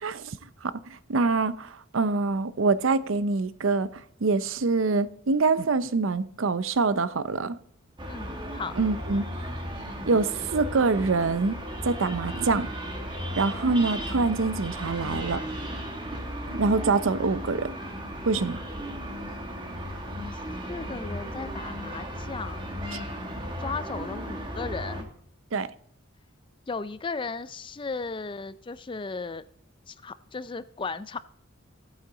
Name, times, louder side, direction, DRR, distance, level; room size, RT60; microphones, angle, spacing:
voice 1, 0.0-3.9 4.2-7.6 8.8-9.2 10.1-11.6 11.8-12.7 13.4-15.4 16.5-17.7 18.2-18.6 25.5-25.7, right 3 dB, 75° right, 0.6 m, -25 dB
sound 1, 8.0-25.0, equal, 25° right, 1.6 m, -35 dB
voice 2, 8.1-8.7 13.6-13.8 20.3-20.4 20.7-22.7 23.6-25.1 26.7-29.4 29.9-31.2, left 4 dB, 25° left, 0.4 m, -36 dB
15.0 x 8.3 x 3.9 m
head